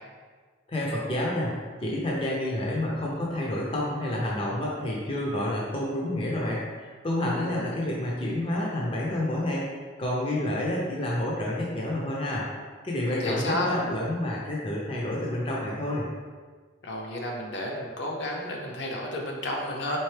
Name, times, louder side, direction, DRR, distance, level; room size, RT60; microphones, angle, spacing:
voice 1, 0.7-1.5 1.8-9.7 10.0-12.5 12.8-16.1, left 1 dB, 25° left, -4 dB, 0.5 m, -29 dB
voice 2, 7.3-7.6 13.0-13.8 16.8-20.0, left 1 dB, 60° left, -1 dB, 0.7 m, -31 dB
4.4 x 3.6 x 3.3 m, 1.5 s
head